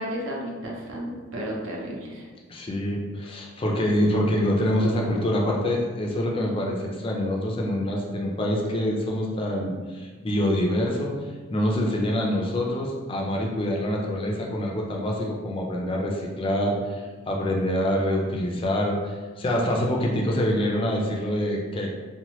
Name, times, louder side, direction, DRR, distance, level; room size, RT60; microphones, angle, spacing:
voice 1, 0.0-2.3, equal, 70° right, -2 dB, 0.6 m, -33 dB
voice 2, 2.5-11.2 11.5-21.9, equal, 25° left, -1 dB, 0.3 m, -25 dB
2.9 x 2.2 x 2.9 m, 1.4 s
head